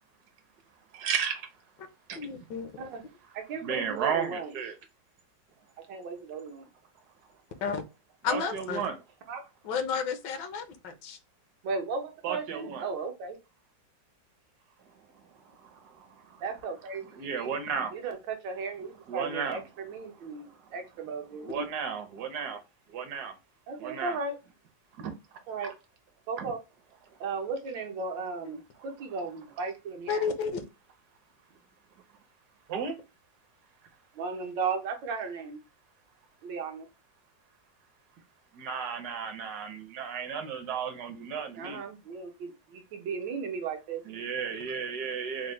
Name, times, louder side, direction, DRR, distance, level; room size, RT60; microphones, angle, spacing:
voice 1, 0.9-1.4 2.1-2.2 3.6-4.7 8.3-9.0 12.2-12.9 17.1-17.9 19.1-19.6 21.4-22.6 22.9-23.3 23.8-24.2 25.0-25.1 25.6-25.7 26.4-26.5 32.7-32.9 38.6-41.8 44.0-45.5, right 7 dB, 70° right, 1.1 m, -33 dB
voice 2, 2.1-2.7 7.6-7.8 8.2-8.8 9.6-11.2 21.5-21.7 28.4-28.6 30.1-30.6, left 6 dB, 75° left, 1.3 m, -32 dB
voice 3, 3.3-4.5 5.9-6.7 9.3-9.5 11.6-13.4 16.4-17.1 17.4-17.5 17.9-21.5 23.7-24.3 25.5-25.7 26.3-26.6 27.2-30.3 34.2-35.6 36.4-36.9 41.6-44.0, right 4 dB, 85° right, 1.6 m, -35 dB
4.9 x 2.1 x 3.1 m
omnidirectional pair, 1.9 m